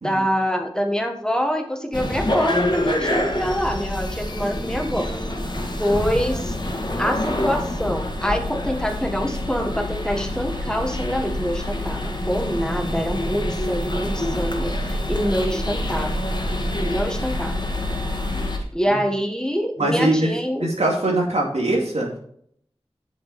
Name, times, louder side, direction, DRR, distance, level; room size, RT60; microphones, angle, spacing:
voice 1, 0.0-5.1 5.8-6.6 7.0-16.1 16.8-17.7 18.7-20.7, equal, 5° left, 4 dB, 1.4 m, -25 dB
sound 1, 1.9-18.6, left 1 dB, 45° left, 1.6 m, -26 dB
voice 2, 19.8-20.3 20.6-22.2, right 1 dB, 90° right, -1 dB, 2.3 m, -22 dB
8.3 x 7.2 x 4.1 m, 0.65 s
wide cardioid pair, 50°, 11 cm